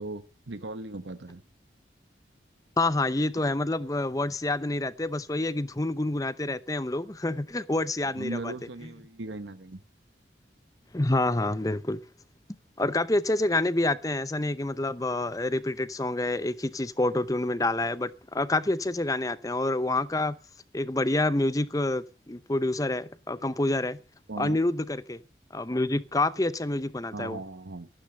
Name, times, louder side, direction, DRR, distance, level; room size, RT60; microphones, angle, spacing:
voice 1, 0.0-1.4 8.2-9.8 24.3-24.6 27.1-27.9, right 2 dB, 90° right, 1.1 m, -38 dB
voice 2, 2.8-8.5 10.9-12.0 12.8-20.4 20.7-24.0 24.4-25.2 25.5-27.4, left 2 dB, 20° left, 0.7 m, -27 dB
14.0 x 11.5 x 5.3 m
head